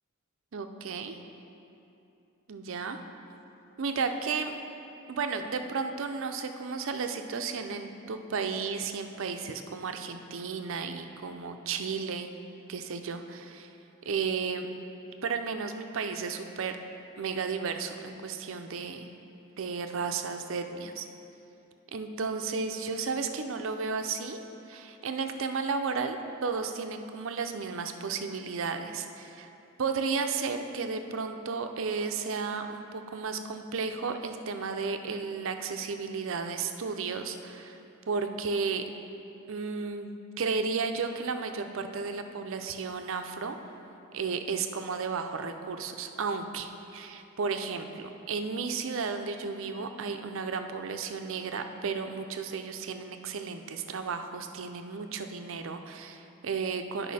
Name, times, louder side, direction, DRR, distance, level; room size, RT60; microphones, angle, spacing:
voice 1, 0.5-1.2 2.5-3.0 3.8-4.5 5.1-12.4 12.7-13.7 14.1-14.7 15.2-16.8 17.2-19.1 19.6-21.1 21.9-24.4 24.7-29.5 29.8-37.8 38.1-38.8 39.5-43.6 44.1-57.1, right 5 dB, 60° right, 6 dB, 0.5 m, -33 dB
10.5 x 5.5 x 4.1 m, 2.8 s
head